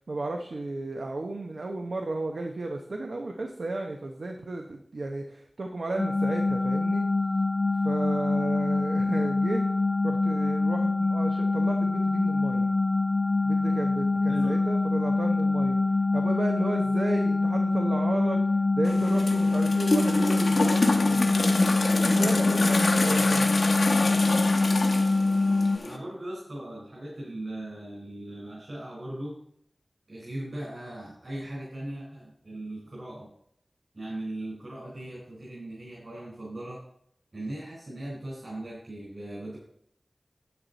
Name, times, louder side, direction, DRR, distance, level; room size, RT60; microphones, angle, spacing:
voice 1, 0.0-7.0 7.8-9.6 10.0-12.7 13.4-15.8 16.1-21.6 22.0-23.5, right 2 dB, 80° right, 3 dB, 0.8 m, -33 dB
sound 1, 6.0-25.8, left 3 dB, 40° left, 0.7 m, -25 dB
voice 2, 14.3-14.7 25.8-29.4 30.1-33.3 33.9-36.8 37.3-39.6, right 1 dB, 55° right, -6 dB, 4.2 m, -38 dB
sound 2, 18.8-26.0, left 2 dB, 75° left, 1.2 m, -27 dB
10.5 x 8.0 x 4.0 m, 0.70 s
wide cardioid pair, 75°, 0 cm